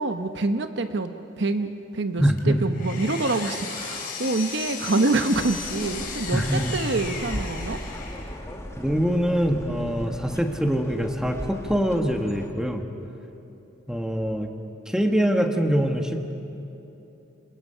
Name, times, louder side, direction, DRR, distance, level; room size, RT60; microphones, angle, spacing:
voice 1, 0.0-7.8, right 2 dB, 60° right, 8 dB, 0.9 m, -26 dB
voice 2, 2.2-2.7 6.3-6.8 8.8-12.8 13.9-14.5 14.9-16.3, equal, 5° right, 4 dB, 1.4 m, -24 dB
Power tool, 2.4-8.5, left 5 dB, 45° left, 3.8 m, -35 dB
sound 1, 5.3-12.5, equal, 15° left, 1.8 m, -38 dB
27.0 x 26.5 x 5.7 m, 2.9 s
head